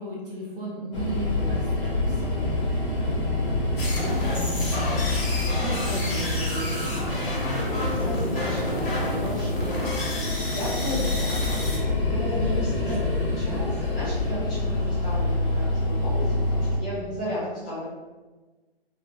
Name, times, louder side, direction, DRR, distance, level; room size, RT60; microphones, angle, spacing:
voice 1, 0.0-7.4 12.8-13.3 17.0-17.2, right 1 dB, 60° right, -4 dB, 1.1 m, -37 dB
sound 1, 0.9-16.8, left 2 dB, 30° left, 0.7 m, -27 dB
sound 2, 3.8-11.8, left 1 dB, 60° left, 1.0 m, -30 dB
voice 2, 7.5-9.9 10.1-17.9, equal, 10° left, -11 dB, 0.3 m, -35 dB
2.9 x 2.8 x 2.3 m, 1.3 s
figure-of-eight pair, 125°, 31 cm